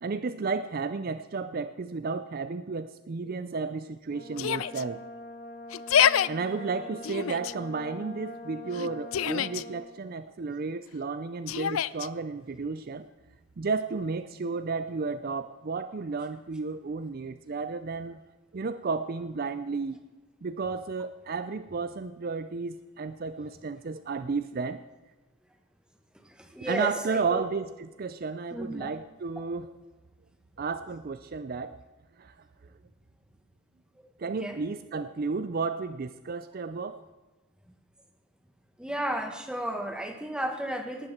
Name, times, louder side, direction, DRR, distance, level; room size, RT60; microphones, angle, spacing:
voice 1, 0.0-5.0 6.3-13.1 13.6-18.2 18.5-20.0 20.4-24.8 26.6-27.7 28.0-29.7 30.6-31.8 32.2-32.4 34.2-37.0, right 4 dB, 45° right, 12 dB, 0.4 m, -33 dB
Brass instrument, 4.1-9.9, left 1 dB, 40° left, 1.2 m, -43 dB
Yell, 4.4-4.8 5.7-6.3 7.0-7.5 8.7-9.6 11.5-12.1, left 9 dB, 75° left, 0.4 m, -26 dB
voice 2, 26.2-27.4 28.5-28.9 34.0-34.1 34.4-34.6 38.8-41.1, equal, 5° right, 4 dB, 1.5 m, -33 dB
18.5 x 12.5 x 4.3 m, 1.2 s
head